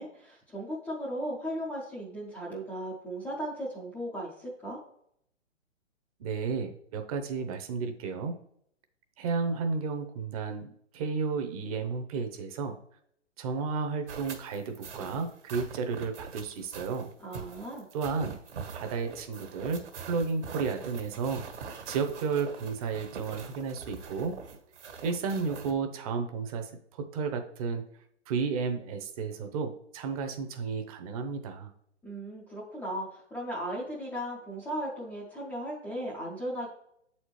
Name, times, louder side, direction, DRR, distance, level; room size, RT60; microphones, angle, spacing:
voice 1, 0.0-4.8 17.2-17.9 32.0-36.7, equal, 5° left, -9 dB, 0.4 m, -36 dB
voice 2, 6.2-8.3 9.2-12.8 13.4-17.1 17.9-18.4 18.7-19.8 20.1-21.4 21.9-24.4 25.0-27.8 28.3-31.7, right 5 dB, 30° right, 6 dB, 0.7 m, -32 dB
sound 1, 14.1-25.7, right 5 dB, 70° right, 1.5 m, -44 dB
7.7 x 4.3 x 3.1 m, 0.69 s
hypercardioid pair, 140°, 36 cm